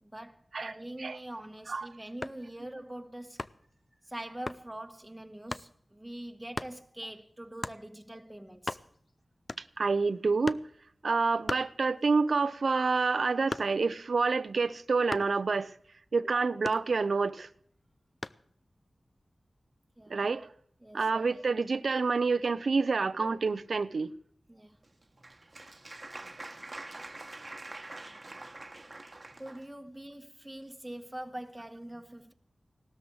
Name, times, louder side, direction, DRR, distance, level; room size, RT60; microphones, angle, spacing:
voice 1, 0.0-3.4 4.0-8.8 20.0-20.2 20.8-21.1 24.5-24.8 29.4-32.3, right 1 dB, 10° right, 1.5 m, -44 dB
sound 1, 2.2-2.5 3.4-3.7 4.5-4.7 5.5-5.7 6.5-6.8 7.6-7.9 8.3-8.4 8.5-9.1 9.5-9.9 10.4-10.8 11.5-12.2 12.6-14.0 15.1-15.4 16.6-17.3 18.2-18.5, left 2 dB, 45° left, 0.6 m, -38 dB
voice 2, 9.8-10.6 11.0-15.7 16.1-17.5 20.1-20.5 20.9-24.1, right 4 dB, 75° right, 0.7 m, -28 dB
Applause, 24.8-29.7, right 2 dB, 35° right, 1.3 m, -45 dB
18.0 x 13.0 x 4.8 m
wide cardioid pair, 60°, 0 cm